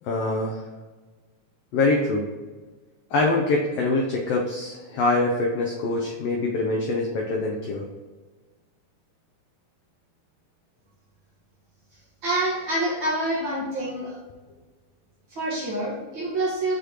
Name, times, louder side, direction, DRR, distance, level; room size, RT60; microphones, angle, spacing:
voice 1, 0.0-0.6 1.7-2.2 3.1-7.8, left 2 dB, 80° left, -1 dB, 1.4 m, -24 dB
voice 2, 12.2-14.2 15.3-16.7, right 1 dB, 45° right, -7 dB, 1.8 m, -27 dB
8.0 x 4.2 x 3.0 m, 1.3 s
omnidirectional pair, 3.7 m